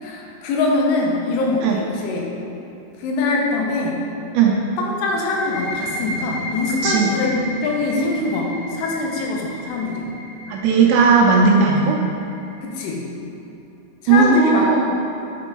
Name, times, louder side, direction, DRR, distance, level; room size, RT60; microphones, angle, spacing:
voice 1, 0.0-2.3 3.0-4.0 4.8-10.1 12.6-13.0 14.0-14.7, left 3 dB, 90° left, -1 dB, 3.5 m, -23 dB
sound 1, 5.3-12.8, equal, 45° left, 1.8 m, -33 dB
voice 2, 10.5-12.0 14.1-14.8, right 5 dB, 85° right, -2 dB, 2.5 m, -15 dB
9.3 x 4.5 x 5.3 m, 2.9 s
omnidirectional pair, 5.5 m